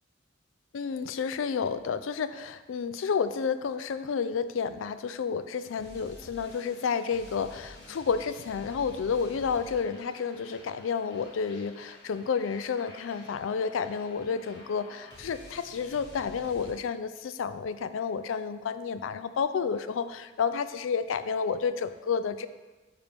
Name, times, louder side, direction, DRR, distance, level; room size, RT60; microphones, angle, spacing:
voice 1, 0.7-22.5, left 6 dB, 85° left, 12 dB, 0.4 m, -30 dB
sound 1, 5.7-16.7, left 1 dB, 55° left, 1.7 m, -50 dB
9.1 x 5.3 x 3.5 m, 1.2 s
head